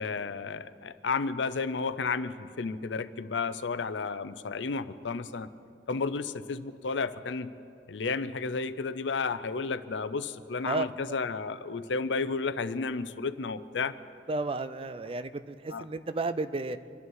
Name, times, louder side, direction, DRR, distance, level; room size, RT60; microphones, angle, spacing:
voice 1, 0.0-5.5 5.9-7.5 7.9-14.0 15.7-15.8, left 4 dB, 85° left, 13 dB, 0.6 m, -32 dB
voice 2, 14.3-16.8, right 3 dB, 30° right, 12 dB, 0.5 m, -32 dB
25.5 x 11.0 x 4.7 m, 2.5 s
head